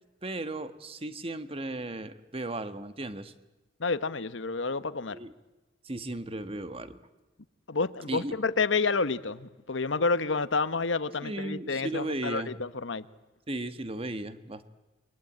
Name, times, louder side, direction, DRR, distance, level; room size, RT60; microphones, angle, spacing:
voice 1, 0.2-3.3 5.1-5.3 5.8-7.0 8.1-8.3 11.2-12.5 13.5-14.7, right 2 dB, 30° right, 11 dB, 1.4 m, -35 dB
voice 2, 3.8-5.2 7.7-13.0, left 4 dB, 90° left, 14 dB, 1.1 m, -29 dB
29.5 x 22.5 x 8.8 m, 1.1 s
head